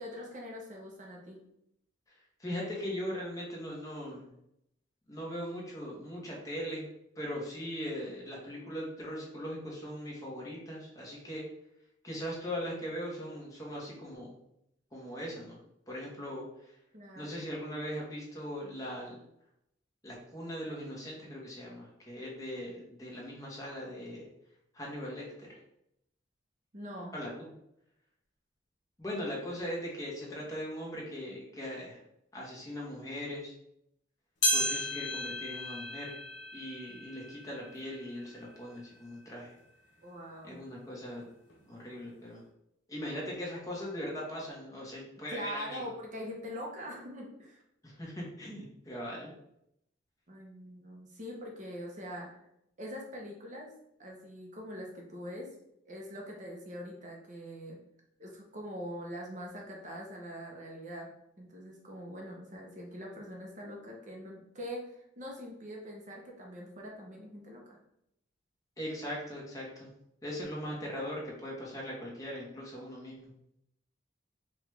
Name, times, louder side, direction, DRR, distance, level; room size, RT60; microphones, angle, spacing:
voice 1, 0.0-1.4 16.9-17.5 26.7-27.2 40.0-40.6 45.3-47.6 50.3-52.4 52.8-53.7 54.0-55.5 55.9-57.8 58.2-67.8, equal, 40° right, -1 dB, 0.7 m, -43 dB
voice 2, 2.4-4.3 5.1-6.9 7.2-11.5 12.0-14.4 14.9-15.6 15.9-16.7 17.2-19.2 20.0-24.3 24.7-25.6 27.1-27.5 29.0-32.0 32.3-33.5 34.5-36.1 36.5-39.5 40.4-41.3 41.7-42.4 42.9-45.9 47.8-49.3 68.8-69.9 70.2-73.3, equal, 15° left, -4 dB, 1.1 m, -40 dB
sound 1, 34.4-39.1 39.6-39.7 40.5-40.6 41.5-41.6, left 1 dB, 65° left, 1.0 m, -35 dB
4.9 x 2.4 x 3.2 m, 0.78 s
head